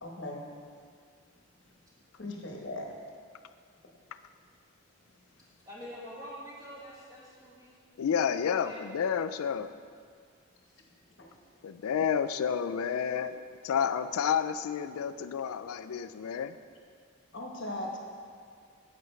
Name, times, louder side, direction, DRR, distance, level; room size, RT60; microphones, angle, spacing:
voice 1, 0.0-0.4 2.1-2.9 11.2-11.3 17.3-18.0, left 1 dB, 55° left, 0 dB, 1.1 m, -38 dB
voice 2, 5.6-7.8 8.3-9.3 10.7-10.8, equal, 20° right, -6 dB, 1.8 m, -46 dB
voice 3, 8.0-9.7 11.6-13.4 13.6-16.5, left 7 dB, 85° left, 12 dB, 0.3 m, -30 dB
9.3 x 7.9 x 3.2 m, 2.1 s
head